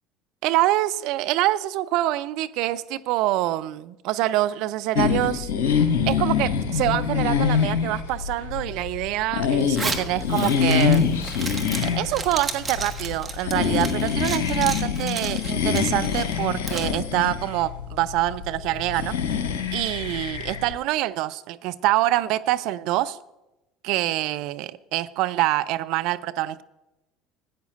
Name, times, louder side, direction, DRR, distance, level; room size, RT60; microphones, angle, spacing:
voice 1, 0.4-5.5 6.1-11.0 11.8-19.1 19.7-23.2 23.8-26.6, right 15 dB, 55° right, 13 dB, 0.4 m, -25 dB
sound 1, 4.9-20.7, left 7 dB, 65° left, 1.0 m, -25 dB
Zipper (clothing), 9.6-17.0, right 4 dB, 20° right, 1.3 m, -34 dB
15.5 x 9.1 x 2.6 m, 0.95 s
figure-of-eight pair, 65°, 0 cm